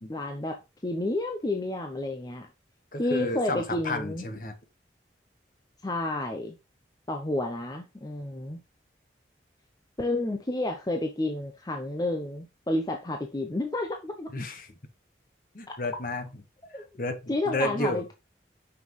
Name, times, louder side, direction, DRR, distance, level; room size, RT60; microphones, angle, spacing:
voice 1, 0.1-2.5 3.0-4.2 5.8-6.6 7.1-8.6 10.0-14.5 15.7-15.8 16.7-16.8 17.3-18.1, left 2 dB, 20° left, 0.6 m, -30 dB
voice 2, 2.9-4.5 14.3-14.7 15.5-16.3 16.7-17.2 17.5-18.0, left 2 dB, 45° left, 1.1 m, -31 dB
5.8 x 5.4 x 3.0 m
head